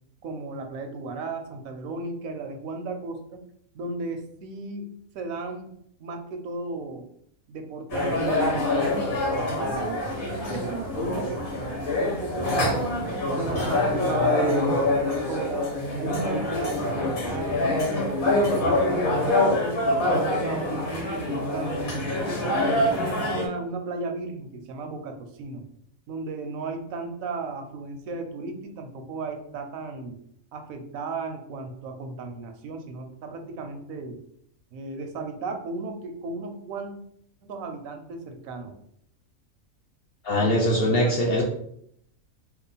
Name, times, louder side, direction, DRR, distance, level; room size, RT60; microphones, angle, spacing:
voice 1, 0.2-3.4 3.7-5.7 6.0-7.1 7.5-8.7 9.6-11.4 12.0-13.0 13.3-15.6 16.0-17.6 17.9-22.0 22.4-25.6 26.1-30.2 30.5-34.2 34.7-36.9 37.4-38.7 40.9-41.1, right 3 dB, 80° right, 5 dB, 1.0 m, -35 dB
sound 1, 7.9-23.5, left 1 dB, 85° left, 1.5 m, -25 dB
voice 2, 40.2-41.4, equal, 60° left, -1 dB, 0.7 m, -22 dB
3.0 x 2.3 x 3.9 m, 0.69 s
omnidirectional pair, 1.4 m